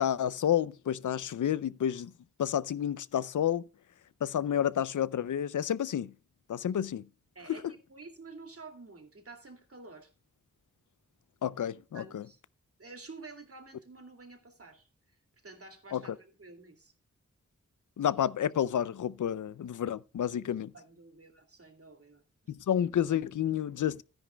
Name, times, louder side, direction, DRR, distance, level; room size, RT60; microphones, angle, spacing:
voice 1, 0.0-2.1 2.4-3.7 4.2-6.1 6.5-7.1 7.5-7.6 11.4-12.2 15.9-16.0 18.0-20.7 22.5-24.0, left 10 dB, 85° left, 0.5 m, -30 dB
voice 2, 7.3-10.1 11.9-12.4 12.8-14.9 15.4-16.9 20.7-22.2 22.7-22.8, right 3 dB, 50° right, 2.4 m, -50 dB
13.0 x 10.0 x 2.2 m
wide cardioid pair, 65°, 30 cm